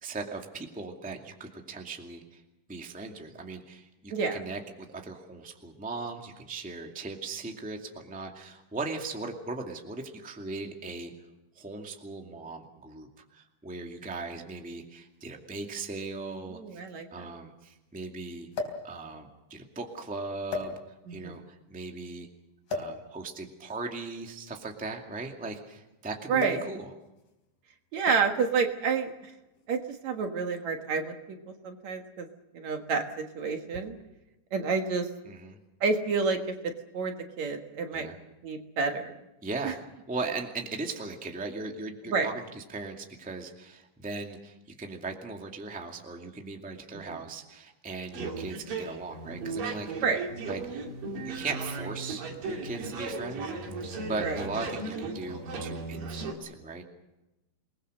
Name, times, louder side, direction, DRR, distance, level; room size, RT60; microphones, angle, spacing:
voice 1, 0.0-2.4 2.7-4.6 4.9-11.1 11.5-16.8 17.1-18.5 18.8-20.8 21.1-21.4 21.7-22.3 22.7-26.9 35.2-35.6 37.9-38.2 39.4-39.8 40.1-49.9 50.4-50.8 51.2-56.8, right 3 dB, 5° right, 2 dB, 1.6 m, -38 dB
sound 1, 14.8-14.9 16.0-16.1 16.3-16.4 18.5-18.9 19.7-19.9 20.5-21.2 22.7-23.0 24.1-25.8 26.4-26.8 27.0-27.3 28.1-28.4 29.4-29.7, left 2 dB, 75° left, 5.3 m, -36 dB
voice 2, 16.5-17.2 21.1-21.4 26.3-26.7 27.9-29.3 29.7-31.4 31.6-32.3 32.5-34.0 34.5-35.1 35.8-36.4 36.6-38.1 38.4-39.1 39.6-39.7 42.1-42.3 46.9-47.2 50.0-50.2 54.2-54.5, right 5 dB, 60° right, 5 dB, 2.7 m, -29 dB
sound 2, 48.1-56.3, right 3 dB, 85° right, 4.3 m, -36 dB
28.0 x 20.5 x 6.5 m, 0.97 s
omnidirectional pair, 3.9 m